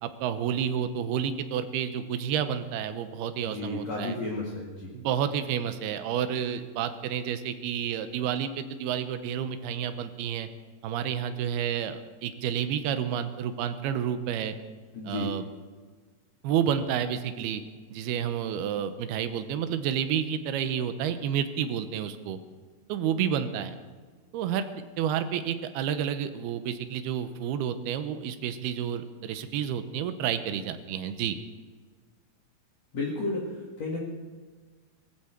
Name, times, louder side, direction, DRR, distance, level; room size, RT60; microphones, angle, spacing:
voice 1, 0.0-4.2 4.9-10.5 10.8-14.6 15.0-15.4 16.4-17.6 17.9-22.4 22.9-23.8 24.3-24.7 25.0-31.4, right 9 dB, 90° right, 10 dB, 2.9 m, -30 dB
voice 2, 3.5-4.9 14.9-15.3 32.9-34.0, left 3 dB, 50° left, -3 dB, 2.8 m, -33 dB
19.0 x 15.5 x 4.4 m, 1.4 s
omnidirectional pair, 4.4 m